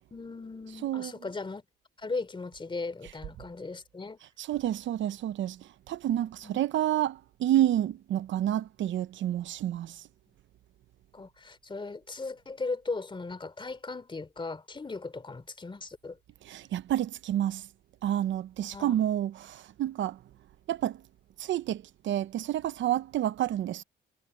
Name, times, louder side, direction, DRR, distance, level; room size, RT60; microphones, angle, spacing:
voice 1, 0.1-1.6 2.0-4.2 6.4-6.6 11.1-16.2 18.7-19.0, left 3 dB, 25° left, 3.3 m, -37 dB
voice 2, 0.8-1.1 4.4-10.1 16.4-17.7 18.0-20.2 20.7-21.0 21.4-23.8, right 12 dB, 70° right, 0.8 m, -29 dB
cardioid pair, 90°, 20 cm